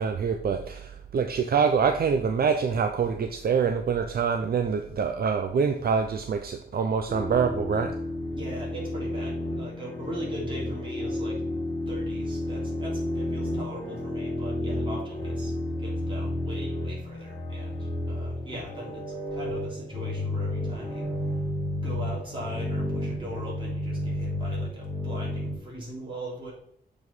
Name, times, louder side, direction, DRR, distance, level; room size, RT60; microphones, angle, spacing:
voice 1, 0.0-7.9, right 6 dB, 65° right, 6 dB, 0.6 m, -25 dB
sound 1, 7.1-25.6, left 1 dB, 25° left, 2.9 m, -31 dB
voice 2, 8.3-11.4 11.9-15.5 15.8-21.1 21.8-26.5, right 1 dB, 30° right, -4 dB, 3.3 m, -40 dB
7.3 x 5.0 x 4.0 m, 0.69 s
wide cardioid pair, 170°, 17 cm